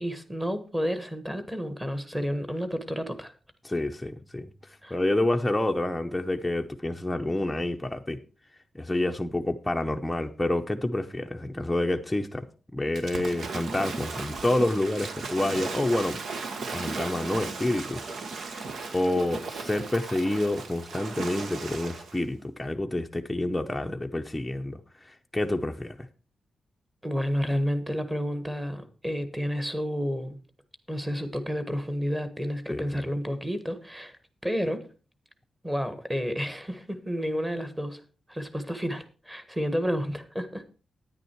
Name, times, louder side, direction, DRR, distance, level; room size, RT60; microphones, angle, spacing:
voice 1, 0.0-3.3 4.8-4.9 27.0-30.4 30.9-34.2 34.4-34.9 35.6-38.0 38.3-40.7, equal, 10° right, 1.4 m, -30 dB
voice 2, 3.6-4.5 4.9-8.2 8.7-12.5 12.7-16.2 16.7-18.1 18.9-26.1 32.7-33.0, left 1 dB, 10° left, 0.7 m, -28 dB
Waves surf / Splash splatter, 13.0-22.2, right 4 dB, 75° right, 1.5 m, -36 dB
9.8 x 9.7 x 4.5 m
wide cardioid pair, 130°, 0 cm